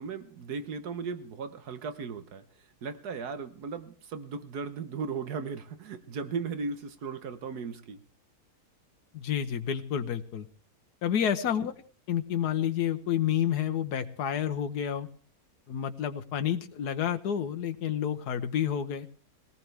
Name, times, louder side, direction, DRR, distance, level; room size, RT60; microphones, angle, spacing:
voice 1, 0.0-2.4 2.8-8.0, right 5 dB, 80° right, 10 dB, 1.6 m, -36 dB
voice 2, 9.1-10.5 11.0-11.7 12.1-15.1 15.7-19.1, left 9 dB, 90° left, 8 dB, 1.5 m, -29 dB
20.5 x 18.0 x 3.4 m, 0.42 s
omnidirectional pair, 1.6 m